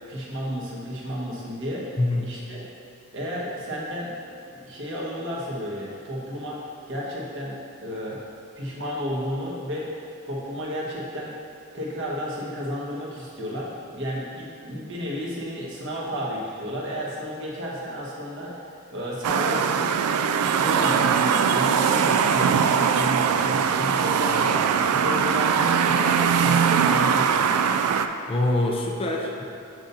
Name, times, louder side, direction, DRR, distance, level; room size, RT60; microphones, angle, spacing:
voice 1, 0.1-2.7 3.1-4.1 4.5-6.6 6.9-7.6 7.8-8.2 8.6-9.9 10.2-11.3 11.7-18.6 18.9-19.9 20.6-27.4, equal, 60° right, -5 dB, 1.3 m, -32 dB
voice 2, 2.0-2.3 28.3-29.4, left 2 dB, 25° left, 0 dB, 0.4 m, -24 dB
sound 1, 19.2-28.1, right 7 dB, 85° right, 0.3 m, -21 dB
6.7 x 6.2 x 2.7 m, 2.7 s
head